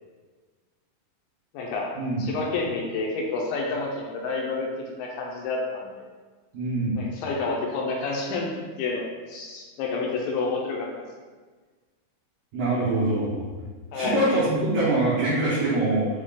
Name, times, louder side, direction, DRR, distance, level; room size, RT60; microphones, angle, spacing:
voice 1, 1.5-1.9 2.2-6.0 7.0-8.5 8.8-11.1 13.9-14.2, left 3 dB, 80° left, -1 dB, 2.2 m, -29 dB
voice 2, 6.5-7.0 12.5-13.4 13.9-16.1, right 2 dB, 75° right, -9 dB, 1.7 m, -24 dB
6.2 x 2.3 x 3.6 m, 1.4 s
omnidirectional pair, 4.3 m